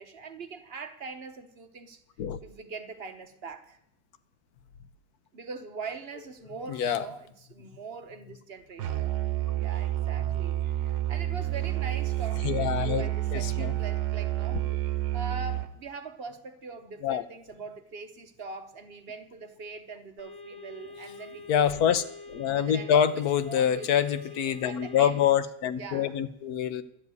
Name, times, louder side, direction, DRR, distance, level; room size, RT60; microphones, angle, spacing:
voice 1, 0.0-2.0 2.4-3.8 5.3-9.0 9.5-14.6 15.1-21.8 22.5-25.2 25.8-26.1, right 4 dB, 40° right, 1.0 m, -42 dB
voice 2, 6.7-7.0 12.4-13.7 17.0-17.2 21.5-22.0 22.3-26.8, left 9 dB, 65° left, 1.2 m, -26 dB
Musical instrument, 8.8-15.8, right 15 dB, 70° right, 1.3 m, -29 dB
sound 1, 20.2-25.3, left 3 dB, 15° left, 1.4 m, -45 dB
12.0 x 7.2 x 9.4 m
omnidirectional pair, 1.9 m